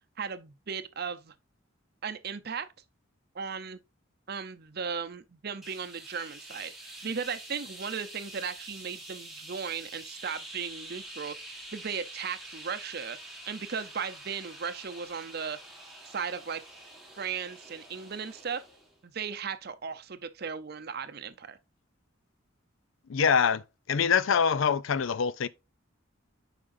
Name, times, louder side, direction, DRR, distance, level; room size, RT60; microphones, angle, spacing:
voice 1, 0.2-1.3 2.0-2.7 3.3-3.8 4.3-13.2 13.5-15.6 16.1-16.6 17.2-18.6 19.0-21.6, right 6 dB, 50° right, 0.6 m, -36 dB
sound 1, 5.6-19.0, right 1 dB, ahead, 1.5 m, -46 dB
voice 2, 23.1-25.5, left 6 dB, 75° left, 0.4 m, -25 dB
8.6 x 5.0 x 2.6 m
head